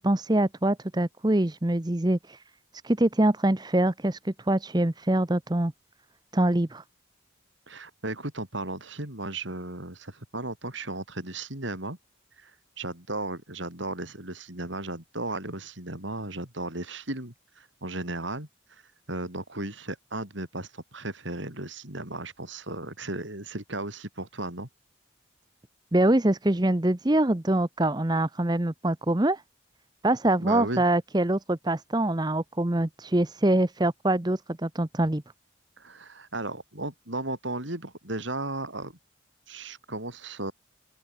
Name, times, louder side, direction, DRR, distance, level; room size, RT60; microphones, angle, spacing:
voice 1, 0.0-2.4 2.8-5.7 6.3-6.8 25.9-29.4 30.0-35.2, right 1 dB, 20° right, 0.8 m, -24 dB
voice 2, 7.7-12.0 12.4-12.5 12.8-18.8 19.1-24.7 30.4-30.8 35.8-38.9 39.5-40.5, right 2 dB, 70° right, 4.8 m, -35 dB
open air
head